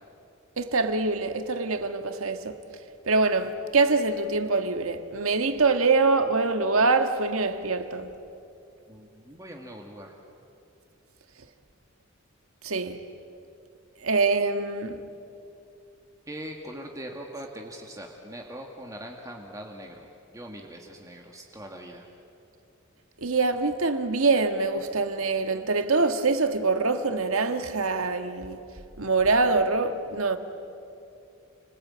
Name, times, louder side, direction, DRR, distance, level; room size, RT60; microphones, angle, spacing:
voice 1, 0.6-2.6 3.1-8.1 12.6-13.0 14.0-15.0 23.2-28.6 29.0-30.4, right 3 dB, 85° right, 1.6 m, -24 dB
voice 2, 8.9-10.2 16.3-22.1, right 1 dB, 15° right, 1.9 m, -41 dB
30.0 x 20.0 x 8.8 m
head